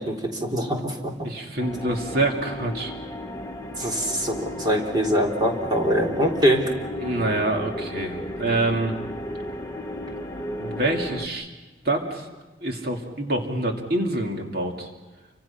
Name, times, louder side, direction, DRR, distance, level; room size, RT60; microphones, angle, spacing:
voice 1, 0.0-1.3 3.8-6.6, equal, 25° right, -1 dB, 3.6 m, -23 dB
voice 2, 1.2-2.9 3.8-3.9 7.0-9.0 10.6-11.5 11.8-12.3 12.6-14.9, right 2 dB, 55° right, 2 dB, 2.5 m, -26 dB
sound 1, 1.6-11.3, left 1 dB, 15° left, 1.4 m, -34 dB
29.0 x 25.5 x 5.8 m, 1.1 s
head